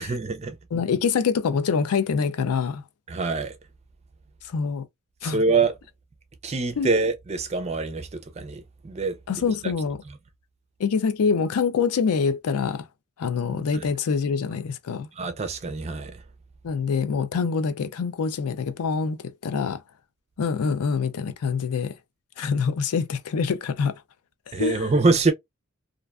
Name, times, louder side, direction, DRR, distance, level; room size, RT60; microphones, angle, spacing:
voice 1, 0.0-0.6 3.1-3.6 5.2-5.7 6.4-9.2 9.6-9.7 13.7-13.9 15.1-16.2 24.5-25.3, right 3 dB, 30° right, 0.4 m, -25 dB
voice 2, 0.7-2.8 4.4-4.9 5.2-5.4 6.8-6.9 9.3-10.0 10.8-12.9 13.2-15.1 16.6-19.8 20.4-21.9 22.4-24.0 24.6-24.9, left 5 dB, 90° left, 0.4 m, -25 dB
2.4 x 2.2 x 2.3 m
head